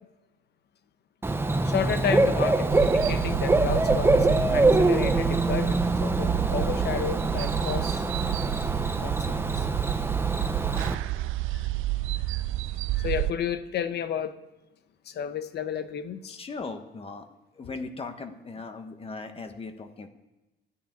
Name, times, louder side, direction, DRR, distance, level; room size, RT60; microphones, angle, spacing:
Bird / Cricket, 1.2-10.9, right 2 dB, 10° right, 0.7 m, -24 dB
voice 1, 1.6-8.0 9.0-9.6 10.9-11.1 12.3-12.4 13.0-14.4 15.1-16.4, left 8 dB, 50° left, 1.1 m, -32 dB
sound 1, 2.7-13.3, right 16 dB, 70° right, 0.5 m, -30 dB
voice 2, 16.3-17.3 17.5-20.1, left 3 dB, 25° left, 1.2 m, -38 dB
13.5 x 10.0 x 9.1 m
cardioid pair, 140°, 21 cm